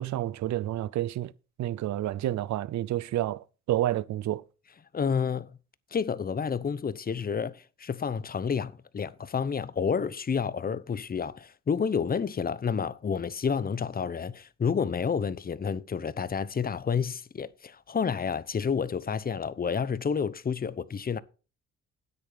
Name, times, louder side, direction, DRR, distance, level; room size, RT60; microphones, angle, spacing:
voice 1, 0.0-1.3 1.6-4.4, right 13 dB, 70° right, 0.7 m, -29 dB
voice 2, 4.9-5.6 5.9-21.2, left 6 dB, 30° left, 0.8 m, -30 dB
9.8 x 8.4 x 5.1 m
cardioid pair, 90°, 30 cm